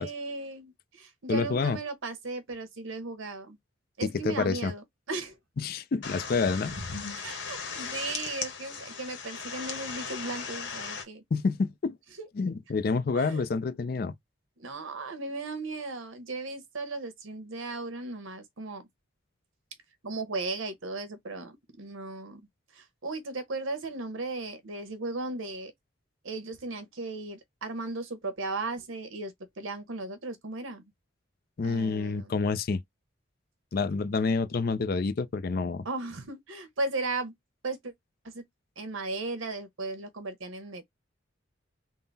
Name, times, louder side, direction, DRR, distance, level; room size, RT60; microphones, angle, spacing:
voice 1, 0.0-3.6 4.0-5.4 7.1-11.2 12.2-12.3 13.1-13.4 14.6-18.8 20.0-22.5 22.7-25.7 26.2-30.8 31.6-32.3 35.8-37.3 37.6-37.9 38.2-38.4 38.8-40.8, right 3 dB, 80° right, 1.0 m, -36 dB
voice 2, 1.3-1.8 4.2-4.7 5.6-6.7 11.3-12.0 12.4-14.1 31.6-32.8 33.7-35.8, left 4 dB, 50° left, 0.4 m, -28 dB
sound 1, 6.0-11.0, left 5 dB, 65° left, 1.0 m, -37 dB
3.7 x 2.0 x 3.9 m
head